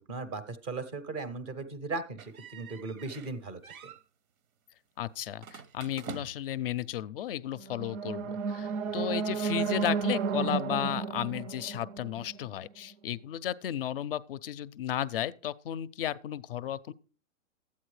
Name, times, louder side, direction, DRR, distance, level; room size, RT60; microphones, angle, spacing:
voice 1, 0.0-3.9, right 3 dB, 15° right, 0.5 m, -38 dB
sound 1, 2.2-3.3 3.6-4.0 5.4-6.6, right 6 dB, 85° right, 0.9 m, -46 dB
voice 2, 5.0-16.9, left 11 dB, 45° left, 0.4 m, -34 dB
sound 2, 7.6-12.7, right 5 dB, 65° right, 0.5 m, -32 dB
12.5 x 8.5 x 3.2 m
hypercardioid pair, 145°, 41 cm